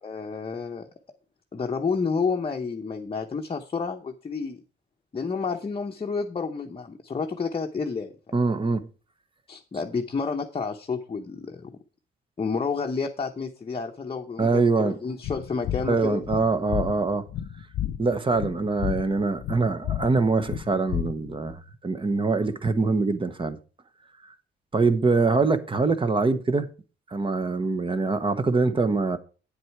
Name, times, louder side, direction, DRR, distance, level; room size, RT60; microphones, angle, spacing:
voice 1, 0.0-0.9 1.5-4.6 5.1-8.4 9.5-11.8 12.4-16.2, left 5 dB, 30° left, 0.9 m, -30 dB
voice 2, 8.3-8.8 14.4-15.0 15.8-17.2 18.0-23.6 24.7-26.7 27.1-29.2, right 3 dB, 25° right, 1.0 m, -24 dB
sound 1, 15.2-21.5, left 11 dB, 80° left, 0.8 m, -32 dB
8.8 x 7.7 x 4.7 m
cardioid pair, 90°, 20 cm